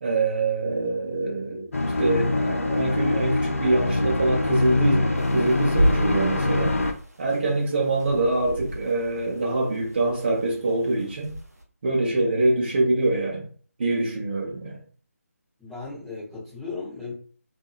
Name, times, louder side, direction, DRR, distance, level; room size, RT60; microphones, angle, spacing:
voice 1, 0.0-6.8 7.2-11.3 11.8-13.5 13.8-14.8, right 2 dB, 40° right, 0.9 m, -24 dB
sound 1, 1.7-6.9, left 2 dB, 60° left, 0.5 m, -24 dB
sound 2, 5.2-11.6, equal, 75° right, 0.8 m, -31 dB
voice 2, 15.6-17.1, left 4 dB, 5° left, 0.9 m, -36 dB
2.7 x 2.7 x 2.4 m
figure-of-eight pair, 155°, 8 cm